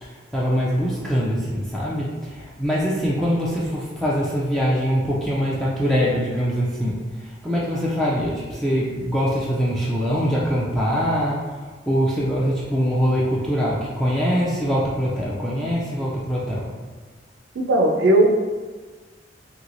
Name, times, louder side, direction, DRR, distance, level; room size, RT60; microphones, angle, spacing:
voice 1, 0.0-11.5 11.9-16.7, equal, ahead, -7 dB, 0.3 m, -23 dB
voice 2, 17.5-18.3, right 1 dB, 90° right, 3 dB, 0.4 m, -17 dB
3.1 x 2.7 x 2.5 m, 1.3 s
head